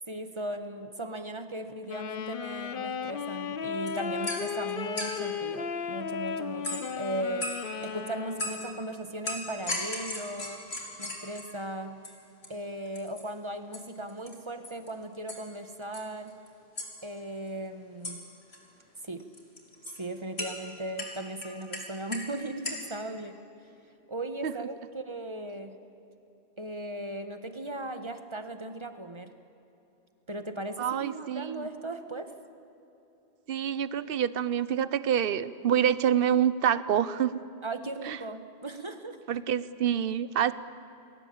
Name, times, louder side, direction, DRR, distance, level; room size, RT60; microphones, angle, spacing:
voice 1, 0.1-7.5 7.8-10.6 11.0-12.0 12.5-16.3 17.0-18.3 19.0-19.3 20.0-23.4 24.1-25.8 26.6-29.3 30.3-32.3 37.6-39.2, right 1 dB, 25° right, 8 dB, 1.6 m, -37 dB
Wind instrument woodwind instrument, 1.9-9.0, left 6 dB, 60° left, 1.0 m, -35 dB
sound 1, 3.6-3.7 3.9-5.3 6.6-7.0 7.4-7.9 8.4-8.7 9.3-11.6 12.0-12.1 12.4-12.5 12.9-13.2 13.7-13.8 14.1-14.3 14.6-14.9 15.3-15.5 15.8-16.5 16.8-16.9 18.0-18.2 18.4-18.6 19.2-20.0 20.4-20.5 21.0-22.3 22.6-23.0, left 1 dB, 85° left, 3.9 m, -36 dB
voice 2, 30.8-31.7 33.5-37.4 38.1-38.2 39.3-40.5, right 9 dB, 65° right, 15 dB, 1.0 m, -27 dB
29.0 x 20.5 x 8.8 m, 2.9 s
omnidirectional pair, 1.0 m